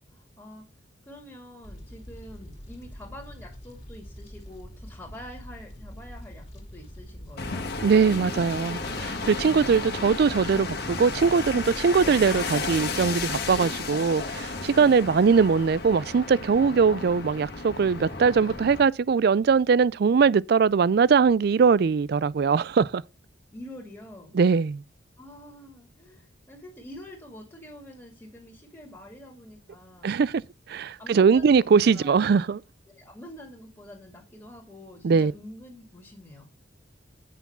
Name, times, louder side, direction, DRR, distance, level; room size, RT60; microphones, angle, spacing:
voice 1, 0.1-0.7 1.0-7.7 23.5-24.4 25.2-30.2 31.0-31.7 31.9-32.3 32.9-36.5, left 1 dB, 15° left, 2.2 m, -46 dB
Fire, 1.6-13.6, equal, 30° left, 2.5 m, -44 dB
sound 1, 7.4-18.8, left 3 dB, 55° left, 1.6 m, -33 dB
voice 2, 7.8-23.0 24.4-24.8 30.0-30.4 30.7-32.6 35.0-35.3, right 5 dB, 55° right, 0.4 m, -21 dB
8.4 x 6.0 x 5.5 m
head